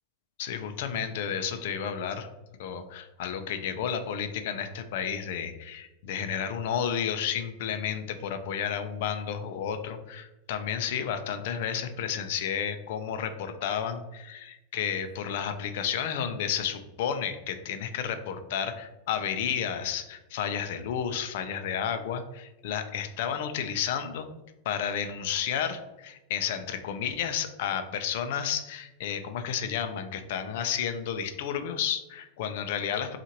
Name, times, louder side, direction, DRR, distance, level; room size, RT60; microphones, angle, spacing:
voice 1, 0.4-2.3 2.6-24.3 24.7-33.2, left 8 dB, 65° left, 8 dB, 0.5 m, -32 dB
5.7 x 2.5 x 2.9 m, 0.98 s
supercardioid pair, 150°, 0 cm